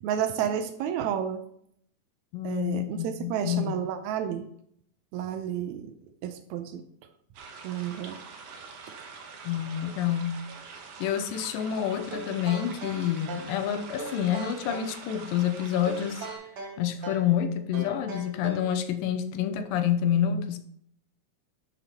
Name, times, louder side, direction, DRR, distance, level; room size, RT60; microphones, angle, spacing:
voice 1, 0.0-1.4 2.4-4.5 5.1-5.9 6.2-6.8 7.6-8.2, right 9 dB, 85° right, 1.6 m, -31 dB
voice 2, 2.3-3.8 9.4-10.4 11.0-16.3 16.8-20.6, left 10 dB, 85° left, 2.4 m, -28 dB
sound 1, 7.3-16.4, right 5 dB, 65° right, 1.6 m, -45 dB
sound 2, 12.1-13.6 14.0-14.9 15.9-17.3 17.7-18.7, right 3 dB, 50° right, 1.9 m, -39 dB
11.0 x 6.9 x 2.9 m
omnidirectional pair, 4.1 m